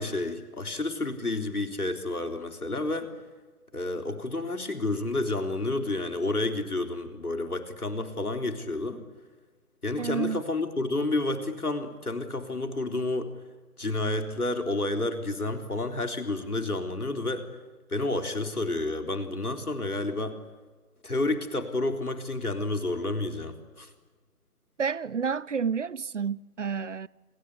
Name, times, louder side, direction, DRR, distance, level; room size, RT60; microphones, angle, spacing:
voice 1, 0.0-3.1 3.7-9.0 9.8-13.3 13.8-17.5 17.9-20.4 21.0-23.9, left 2 dB, 80° left, 4.0 m, -30 dB
voice 2, 10.0-10.4 24.8-27.1, right 6 dB, 55° right, 0.8 m, -30 dB
29.0 x 23.5 x 8.4 m
figure-of-eight pair, 145°, 45 cm